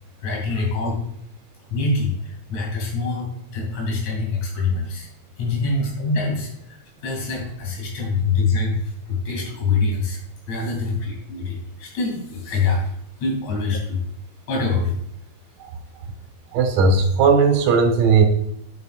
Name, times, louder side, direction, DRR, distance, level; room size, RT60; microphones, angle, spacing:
voice 1, 0.2-1.0 1.7-5.1 5.4-8.8 9.1-10.2 10.5-12.9 13.2-14.0 14.5-15.0, left 3 dB, 60° left, -1 dB, 3.9 m, -24 dB
voice 2, 16.5-18.3, right 4 dB, 90° right, 4 dB, 2.9 m, -17 dB
9.3 x 8.9 x 2.5 m, 0.78 s
omnidirectional pair, 3.7 m